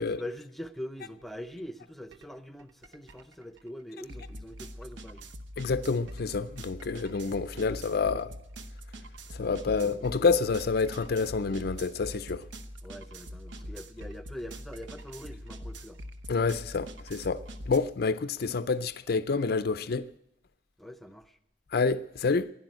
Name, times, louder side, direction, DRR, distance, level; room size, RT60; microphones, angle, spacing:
voice 1, 0.0-5.3 9.3-10.1 12.8-16.0 20.8-21.4, equal, ahead, 0.6 m, -43 dB
sound 1, 2.1-2.3 2.6-17.8, equal, 65° right, 1.0 m, -43 dB
voice 2, 5.6-8.3 9.3-12.5 16.3-20.1 21.7-22.5, left 4 dB, 50° left, 0.5 m, -28 dB
12.0 x 10.5 x 9.0 m
head